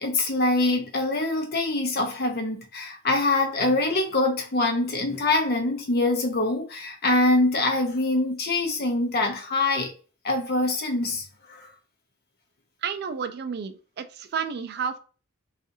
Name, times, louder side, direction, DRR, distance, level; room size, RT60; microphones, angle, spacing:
voice 1, 0.0-9.9 10.2-11.2 11.5-11.7, left 2 dB, 50° left, 0.7 m, -24 dB
voice 2, 12.8-15.0, right 6 dB, 50° right, 0.3 m, -31 dB
2.7 x 2.4 x 2.6 m
head